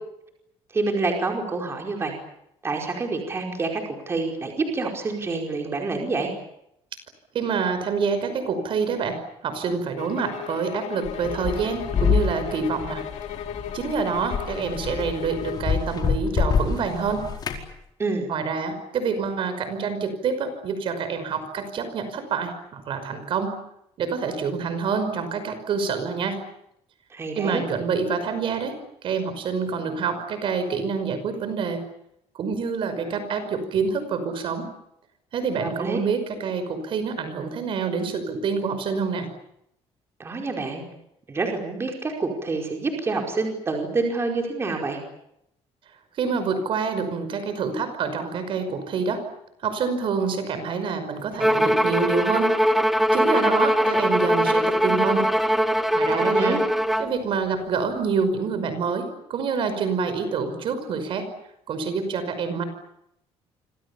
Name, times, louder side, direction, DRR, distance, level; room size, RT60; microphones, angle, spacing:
voice 1, 0.7-2.1 2.6-6.3 18.0-18.3 27.1-27.6 35.6-36.0 40.2-40.8 41.3-45.0 56.1-56.6, right 3 dB, 20° right, 2 dB, 4.9 m, -27 dB
voice 2, 7.3-13.0 13.7-17.2 18.3-23.5 24.0-26.4 27.3-31.8 32.4-34.7 35.3-39.3 46.2-49.2 49.6-52.5 53.1-55.3 55.9-56.6 57.0-61.3 61.7-62.6, right 5 dB, 50° right, 10 dB, 5.5 m, -27 dB
sound 1, 10.0-15.7, left 9 dB, 80° left, 3.4 m, -36 dB
sound 2, 11.0-17.6, left 6 dB, 40° left, 4.6 m, -27 dB
Bowed string instrument, 51.4-57.1, equal, ahead, 1.1 m, -21 dB
28.5 x 26.5 x 7.1 m, 0.78 s
cardioid pair, 170°, 11 cm